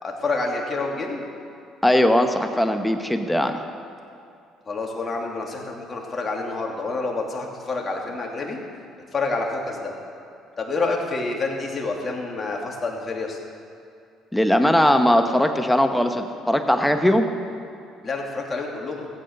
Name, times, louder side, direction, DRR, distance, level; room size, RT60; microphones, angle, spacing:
voice 1, 0.0-1.3 4.7-8.6 9.1-9.9 10.6-13.4 18.0-19.1, left 3 dB, 35° left, 0 dB, 2.6 m, -28 dB
voice 2, 1.8-3.6 14.3-17.3, left 1 dB, 5° left, 7 dB, 1.1 m, -19 dB
15.0 x 9.4 x 6.6 m, 2.5 s
hypercardioid pair, 65°, 0 cm